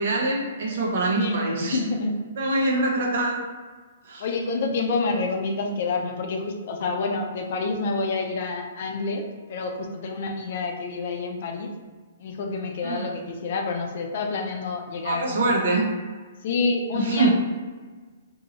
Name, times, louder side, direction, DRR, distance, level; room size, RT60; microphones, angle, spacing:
voice 1, 0.0-1.8 2.4-3.4 4.0-4.2 12.8-13.1 15.0-15.9 16.9-17.3, right 2 dB, 65° right, -2 dB, 1.0 m, -24 dB
voice 2, 1.1-2.2 4.2-11.7 12.2-15.6 16.4-17.3, left 3 dB, 55° left, 3 dB, 0.5 m, -28 dB
2.7 x 2.7 x 4.1 m, 1.4 s
hypercardioid pair, 150°, 0 cm